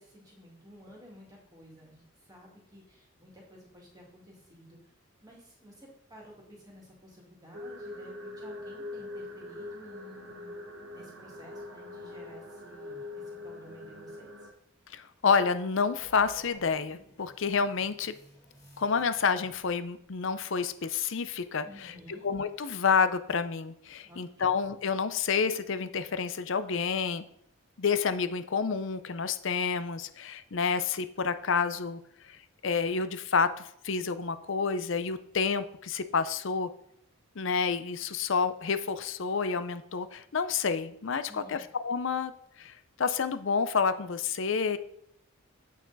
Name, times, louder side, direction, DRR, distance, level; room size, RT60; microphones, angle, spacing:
voice 1, 0.0-4.9 5.2-10.6 10.9-14.5 21.6-22.3 24.0-24.5 41.3-41.6, equal, 15° right, -3 dB, 2.0 m, -53 dB
sound 1, 7.5-14.5, left 2 dB, 60° right, 1.3 m, -43 dB
voice 2, 14.9-18.1 18.8-21.9 22.2-27.2 27.8-32.4 32.6-36.7 37.4-42.3 42.6-44.8, left 5 dB, 60° left, 11 dB, 0.6 m, -29 dB
sound 2, 16.0-20.1, equal, 15° left, 1.7 m, -55 dB
8.4 x 6.2 x 4.0 m, 0.71 s
head